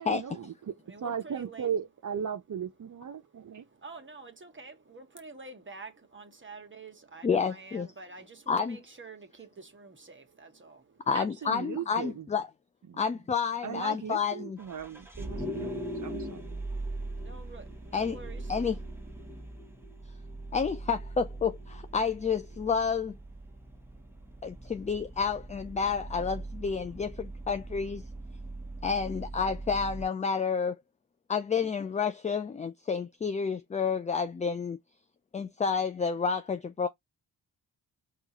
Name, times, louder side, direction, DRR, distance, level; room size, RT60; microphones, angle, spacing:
voice 1, 0.0-0.7 1.0-3.6 11.1-12.2 12.9-13.0 13.6-16.6, right 8 dB, 45° right, 0.7 m, -37 dB
voice 2, 0.7-1.8 2.8-11.1 16.8-18.7, right 3 dB, 25° right, 1.1 m, -49 dB
voice 3, 7.2-7.9 8.5-8.8 11.1-12.5 13.0-14.6 17.9-18.2 18.5-18.8 20.5-23.1 24.4-28.0 28.8-30.7 31.3-34.8 35.3-36.9, left 6 dB, 20° left, 0.3 m, -30 dB
Vehicle, 14.6-30.1, right 1 dB, 5° right, 0.9 m, -41 dB
4.6 x 2.4 x 2.9 m
supercardioid pair, 50°, 44 cm